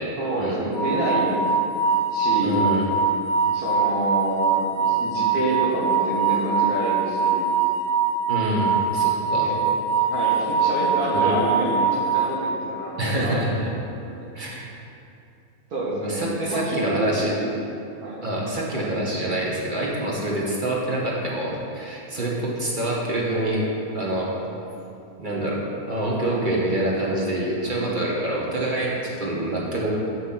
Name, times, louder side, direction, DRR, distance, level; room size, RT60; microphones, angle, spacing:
voice 1, 0.2-1.3 2.1-2.6 3.5-7.5 9.4-9.6 10.1-13.4 15.7-17.3 18.0-18.2 20.5-20.6 26.2-26.5 27.6-28.0, right 1 dB, 90° right, -6 dB, 2.1 m, -28 dB
sound 1, 0.7-13.0, right 5 dB, 85° left, 1.4 m, -23 dB
voice 2, 2.4-2.9 8.3-9.5 11.1-11.3 13.0-13.7 14.3-14.7 15.9-17.3 18.2-23.7 23.9-24.3 25.2-25.6 25.9-29.9, right 1 dB, 35° right, -4 dB, 1.5 m, -26 dB
6.9 x 6.2 x 5.8 m, 2.7 s
omnidirectional pair, 1.5 m